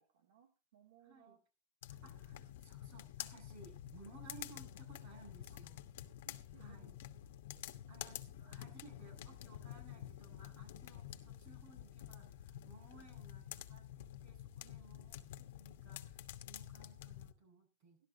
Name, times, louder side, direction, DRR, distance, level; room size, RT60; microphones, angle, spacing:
voice 1, 0.0-1.4 5.5-5.6 6.2-7.0 7.4-7.7 14.6-14.8, right 10 dB, 85° right, 1 dB, 2.5 m, -66 dB
voice 2, 1.0-1.4 1.9-5.8 6.6-6.9 7.9-18.0, right 3 dB, 45° right, 2 dB, 7.2 m, -60 dB
sound 1, 1.8-17.3, left 12 dB, 70° left, 1.2 m, -50 dB
13.0 x 12.0 x 3.9 m, 0.32 s
supercardioid pair, 175°, 0 cm